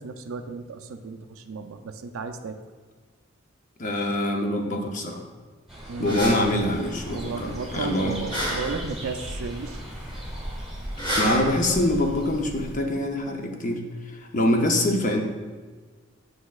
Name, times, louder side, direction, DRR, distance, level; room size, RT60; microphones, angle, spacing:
voice 1, 0.0-2.6 5.9-6.2 7.1-9.8, right 4 dB, 85° right, 7 dB, 0.5 m, -34 dB
voice 2, 3.8-5.2 6.0-8.2 11.2-13.8 14.2-15.2, left 1 dB, 40° left, 3 dB, 0.7 m, -24 dB
sound 1, 5.7-13.3, equal, ahead, 1.1 m, -39 dB
sound 2, 6.0-12.8, equal, 20° left, 1.3 m, -33 dB
8.1 x 6.1 x 2.4 m, 1.4 s
head